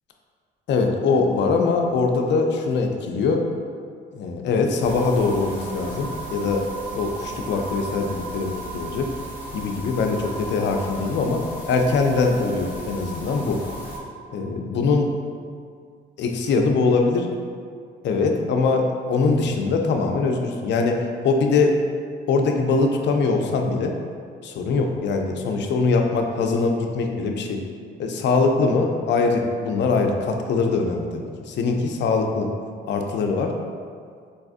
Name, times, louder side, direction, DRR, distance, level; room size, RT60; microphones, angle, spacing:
voice 1, 0.7-3.4 4.1-6.6 6.9-9.1 9.5-10.2 10.5-13.6 14.3-15.1 16.2-17.3 18.0-21.7 22.3-23.9 24.4-27.6 28.0-32.5 32.9-33.5, left 4 dB, 65° left, 3 dB, 0.4 m, -22 dB
sound 1, 4.8-14.0, right 1 dB, 10° right, 0.8 m, -35 dB
4.0 x 2.4 x 2.5 m, 2.1 s
cardioid pair, 90°, 20 cm